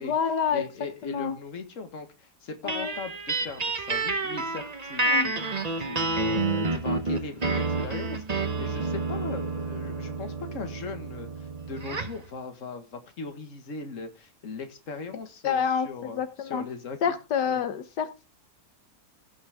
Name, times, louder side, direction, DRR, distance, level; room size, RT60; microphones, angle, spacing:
voice 1, 0.0-0.6 1.0-1.3 2.6-2.9 5.0-5.3 15.4-16.6 17.0-18.2, left 7 dB, 85° left, 9 dB, 1.6 m, -28 dB
voice 2, 0.5-5.3 5.8-17.0 17.5-17.6, left 4 dB, 50° left, 7 dB, 1.9 m, -39 dB
sound 1, 2.7-12.2, right 3 dB, 30° right, 1.0 m, -29 dB
16.5 x 6.4 x 3.5 m, 0.30 s
omnidirectional pair, 1.8 m